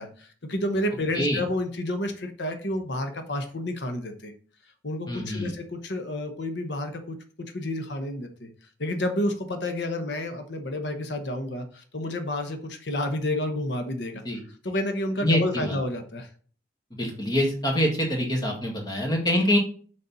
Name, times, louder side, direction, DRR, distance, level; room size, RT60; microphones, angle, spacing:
voice 1, 0.0-4.3 4.8-7.2 7.5-8.5 8.8-14.2 14.6-16.3, left 1 dB, 90° left, 6 dB, 1.1 m, -30 dB
voice 2, 5.1-5.5 14.3-14.4 15.2-15.8 17.0-19.6, left 1 dB, 25° left, 0 dB, 1.8 m, -25 dB
6.7 x 5.3 x 4.1 m, 0.43 s
head